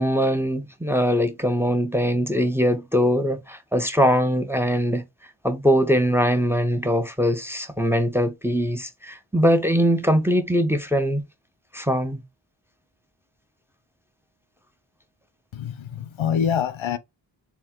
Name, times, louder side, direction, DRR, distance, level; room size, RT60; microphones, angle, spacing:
voice 1, 0.0-5.0 5.4-11.2 11.7-12.2, equal, 5° right, 0.6 m, -22 dB
voice 2, 15.5-17.0, left 8 dB, 75° left, 0.7 m, -25 dB
4.4 x 2.2 x 3.6 m
wide cardioid pair, 65°, 47 cm